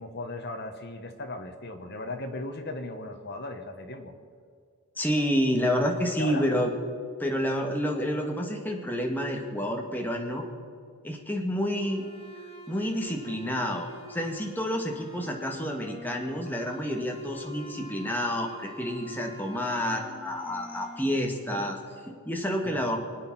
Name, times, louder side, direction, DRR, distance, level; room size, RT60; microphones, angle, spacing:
voice 1, 0.0-4.1 6.2-6.5 22.6-22.9, left 2 dB, 50° left, 5 dB, 1.4 m, -37 dB
voice 2, 5.0-6.7 7.2-10.5 11.0-12.1 12.7-23.0, equal, 10° left, 1 dB, 1.7 m, -29 dB
sound 1, 11.7-21.0, right 1 dB, 25° left, 1.9 m, -46 dB
25.0 x 9.0 x 6.0 m, 2.2 s
head